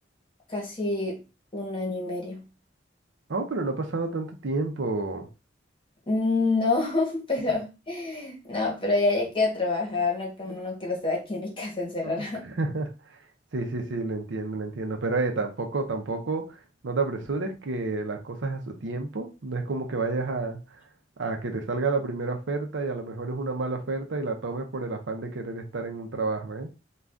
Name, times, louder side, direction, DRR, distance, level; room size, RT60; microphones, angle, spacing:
voice 1, 0.5-1.2 1.5-2.4 6.1-12.4, left 3 dB, 30° left, 1.1 m, -27 dB
voice 2, 3.3-5.3 12.0-12.9 13.5-20.6 21.2-26.7, right 3 dB, 75° right, 0.6 m, -30 dB
2.6 x 2.3 x 3.4 m
head